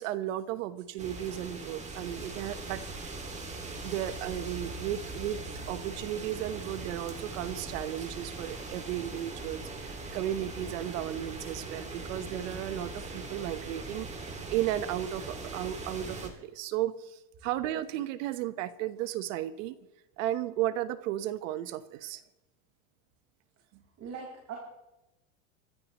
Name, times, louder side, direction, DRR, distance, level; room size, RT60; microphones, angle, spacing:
voice 1, 0.0-2.9 3.2-3.4 3.8-14.2 14.5-19.8 20.2-22.2, right 12 dB, 75° right, 13 dB, 1.2 m, -34 dB
sound 1, 1.0-16.3, right 3 dB, 15° right, 2.4 m, -40 dB
voice 2, 24.0-24.6, right 6 dB, 45° right, -2 dB, 4.9 m, -40 dB
25.0 x 13.5 x 3.1 m, 0.96 s
supercardioid pair, 130°, 39 cm